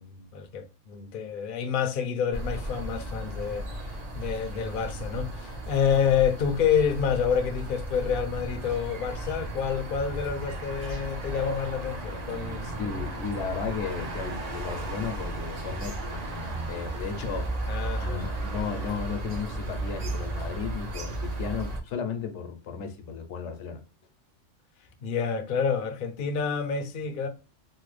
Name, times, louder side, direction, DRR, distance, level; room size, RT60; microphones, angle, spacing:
voice 1, 0.0-3.9 4.1-13.1 17.7-18.3 25.0-27.3, left 7 dB, 60° left, 0.6 m, -28 dB
sound 1, 2.3-21.8, right 1 dB, 45° right, 0.6 m, -35 dB
voice 2, 12.8-17.5 18.0-23.8, left 6 dB, 75° left, 0.9 m, -34 dB
3.2 x 2.2 x 3.1 m
omnidirectional pair, 1.2 m